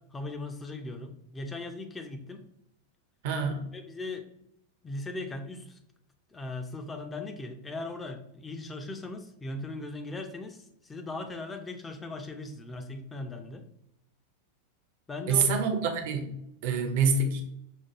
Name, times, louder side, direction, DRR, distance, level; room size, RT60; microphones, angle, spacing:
voice 1, 0.0-2.4 3.7-4.2 4.8-5.8 6.3-13.7 15.1-15.5 16.7-16.9, left 2 dB, 15° left, 6 dB, 0.5 m, -39 dB
voice 2, 3.2-3.6 15.3-16.3 16.6-17.4, right 5 dB, 50° right, 5 dB, 0.7 m, -26 dB
6.1 x 2.2 x 2.9 m, 0.78 s
figure-of-eight pair, 90°, 0 cm